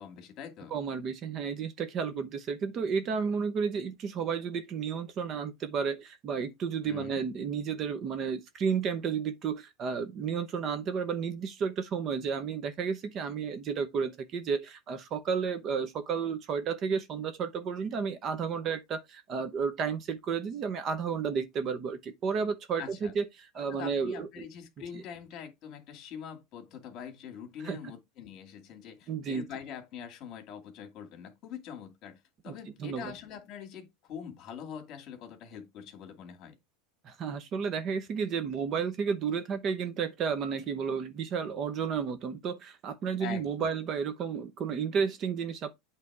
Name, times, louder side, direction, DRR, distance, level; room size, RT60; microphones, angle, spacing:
voice 1, 0.0-0.7 6.8-7.2 22.8-23.1 23.7-36.5 43.2-43.8, left 8 dB, 35° left, 2.3 m, -44 dB
voice 2, 0.7-24.3 24.9-25.0 27.6-27.8 29.1-29.4 32.5-33.1 37.0-45.7, right 6 dB, 30° right, 0.8 m, -32 dB
8.3 x 3.3 x 4.8 m
supercardioid pair, 150°, 0 cm